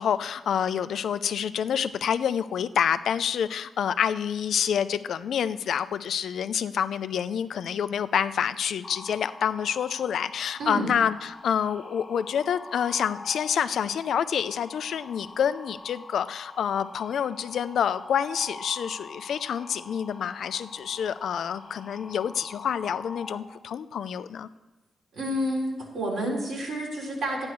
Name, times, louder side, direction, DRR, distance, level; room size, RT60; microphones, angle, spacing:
voice 1, 0.0-24.5, left 8 dB, 75° left, 12 dB, 0.5 m, -27 dB
sound 1, 8.8-23.4, left 3 dB, 25° left, 1.3 m, -44 dB
voice 2, 25.1-27.5, right 1 dB, 70° right, -3 dB, 3.9 m, -29 dB
12.5 x 9.7 x 4.6 m, 1.2 s
wide cardioid pair, 125°, 0 cm